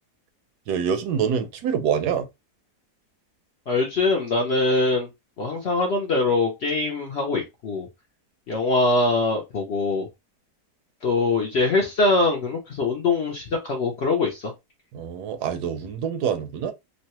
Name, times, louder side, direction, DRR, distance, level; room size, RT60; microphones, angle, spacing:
voice 1, 0.7-2.3 14.9-16.7, right 7 dB, 80° right, 1.1 m, -25 dB
voice 2, 3.7-5.1 5.4-7.9 8.5-10.1 11.0-14.5, left 3 dB, 60° left, 0.7 m, -23 dB
3.1 x 2.1 x 2.8 m
omnidirectional pair, 1.7 m